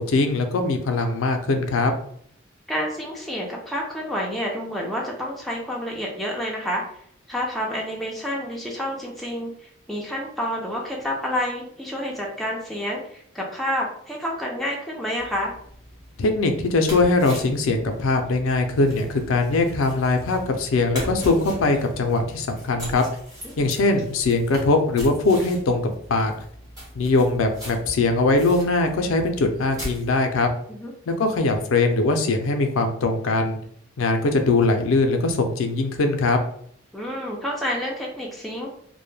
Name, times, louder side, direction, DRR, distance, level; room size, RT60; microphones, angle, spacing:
voice 1, 0.0-1.9 16.2-23.0 23.6-26.3 26.9-30.5 31.1-33.6 34.0-36.4, left 3 dB, 90° left, 6 dB, 0.4 m, -21 dB
voice 2, 2.7-6.8 7.3-9.5 9.9-15.5 23.5-23.7 30.7-30.9 36.9-38.7, equal, ahead, -3 dB, 0.4 m, -29 dB
sound 1, 15.2-30.2, equal, 15° right, 0.8 m, -39 dB
2.1 x 2.1 x 3.1 m, 0.64 s
head